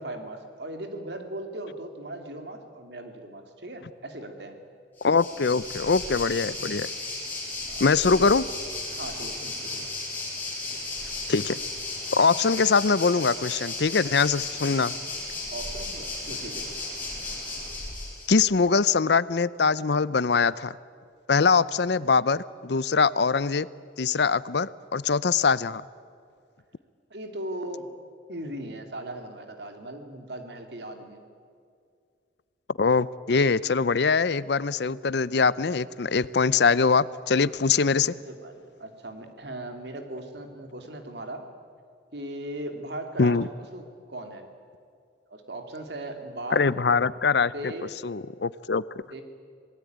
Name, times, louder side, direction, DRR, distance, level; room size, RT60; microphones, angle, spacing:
voice 1, 0.0-4.6 7.6-8.3 8.9-9.9 15.5-16.7 27.1-27.9 28.3-31.2 37.7-41.4 42.1-44.5 45.3-46.7 47.5-47.9 49.1-49.2, right 1 dB, 60° right, 5 dB, 2.8 m, -38 dB
voice 2, 5.0-6.9 7.8-8.4 11.3-11.6 12.1-14.9 18.3-20.7 21.3-23.7 24.0-25.8 32.8-38.1 43.2-43.5 46.5-47.5 48.0-48.8, left 5 dB, 60° left, 19 dB, 0.6 m, -23 dB
Waves surf, 5.0-18.3, left 2 dB, 10° left, 6.1 m, -35 dB
27.0 x 19.0 x 9.4 m, 2.3 s
head